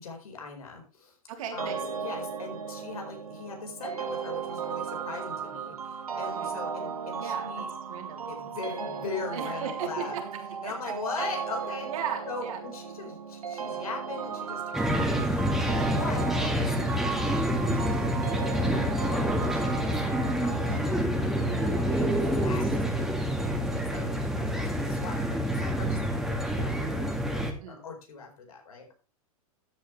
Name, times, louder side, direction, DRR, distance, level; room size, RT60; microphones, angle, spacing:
voice 1, 0.0-1.1 1.5-7.7 8.3-10.2 10.6-11.9 12.3-22.9 23.7-28.9, left 4 dB, 80° left, 3 dB, 4.6 m, -41 dB
voice 2, 1.3-1.8 6.3-6.5 7.2-8.3 9.3-10.2 10.6-10.9 11.8-12.6 16.0-16.2 20.6-22.5 23.0-24.1 27.6-27.8, right 7 dB, 70° right, 2 dB, 3.5 m, -39 dB
sound 1, 1.6-20.8, right 6 dB, 90° right, 1.4 m, -36 dB
sound 2, 14.7-27.5, equal, ahead, 2.1 m, -27 dB
13.0 x 8.7 x 3.3 m, 0.35 s
hypercardioid pair, 105°, 18 cm